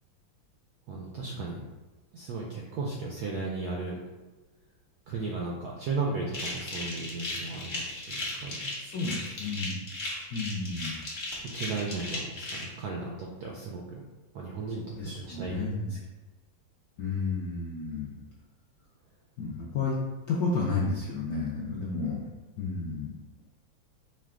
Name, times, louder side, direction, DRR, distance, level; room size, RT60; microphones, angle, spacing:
voice 1, 0.9-1.6 2.1-4.0 5.1-8.7 11.5-14.0 14.3-16.0, right 3 dB, 80° right, -2 dB, 0.8 m, -35 dB
sound 1, 6.3-12.6, left 2 dB, 50° left, 0.6 m, -36 dB
voice 2, 8.8-9.8 10.3-11.0 15.0-16.0 17.0-18.1 19.4-20.0 20.3-22.2 22.6-23.1, left 3 dB, 75° left, -5 dB, 0.8 m, -31 dB
4.8 x 2.2 x 3.6 m, 1.2 s
omnidirectional pair, 2.2 m